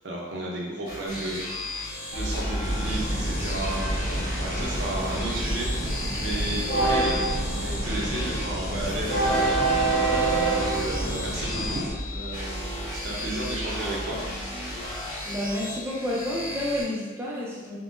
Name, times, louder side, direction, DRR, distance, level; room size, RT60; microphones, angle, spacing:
voice 1, 0.0-1.4 1.7-1.9 2.1-5.9 6.1-7.2 7.6-9.6 9.9-11.9 12.1-14.2, right 1 dB, 55° right, -3 dB, 0.6 m, -33 dB
sound 1, 0.8-16.8, left 1 dB, 20° left, 0.8 m, -36 dB
Train, 2.1-15.1, right 2 dB, 45° left, 1.0 m, -29 dB
sound 2, 2.6-11.9, equal, 85° left, 0.9 m, -33 dB
voice 2, 15.3-17.8, left 1 dB, 10° right, -5 dB, 0.5 m, -30 dB
3.5 x 2.1 x 2.5 m, 1.3 s
head